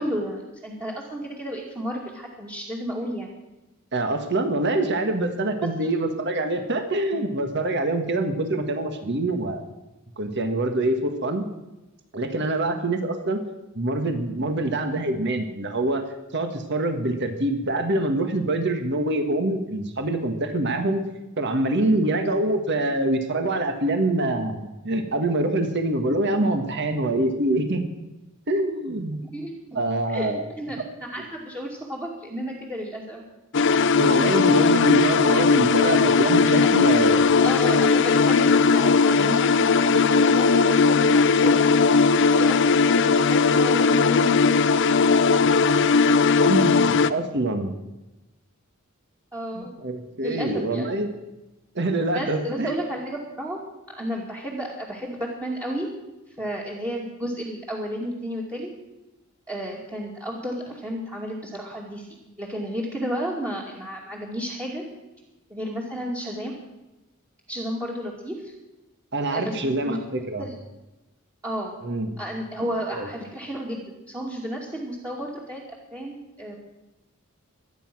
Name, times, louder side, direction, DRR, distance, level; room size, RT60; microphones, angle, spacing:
voice 1, 0.0-3.3 5.8-5.9 29.3-29.5 30.1-33.2 36.6-36.9 37.4-41.9 42.2-45.4 49.3-49.7 50.2-50.9 52.1-53.6 53.9-55.9 56.4-58.7 59.5-62.1 62.4-64.8 65.5-66.5 67.5-68.5 69.3-70.0 70.4-70.5 71.4-71.8 72.2-73.8 74.1-75.6 75.9-76.6, equal, 15° right, -5 dB, 2.4 m, -32 dB
voice 2, 3.9-9.6 10.2-11.5 12.1-13.4 13.8-16.0 16.3-21.0 21.4-27.8 28.5-29.2 29.7-30.5 34.0-37.3 46.5-47.7 49.6-51.1 51.8-52.7 69.1-70.5 71.8-72.1 72.9-73.1, right 2 dB, 55° right, 6 dB, 1.7 m, -25 dB
sound 1, 33.5-47.1, left 4 dB, 60° left, 0.6 m, -18 dB
24.0 x 9.8 x 6.2 m, 1.0 s
head